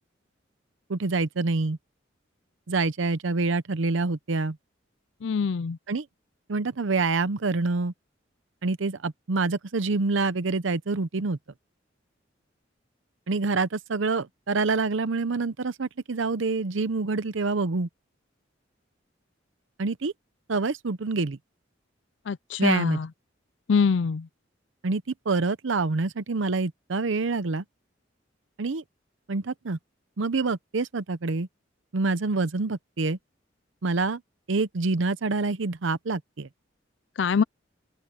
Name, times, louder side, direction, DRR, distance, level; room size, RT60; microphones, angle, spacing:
voice 1, 0.9-1.8 2.7-4.6 5.9-6.1 6.5-7.9 8.6-11.4 13.3-17.9 19.8-20.1 20.5-21.4 22.6-23.0 24.8-27.6 28.6-28.8 29.3-29.8 30.2-31.5 31.9-33.2 33.8-34.2 34.5-36.5, right 3 dB, 80° right, 0.7 m, -26 dB
voice 2, 5.2-5.8 22.3-23.1 23.7-24.3 37.2-37.4, left 5 dB, 70° left, 0.4 m, -24 dB
open air
head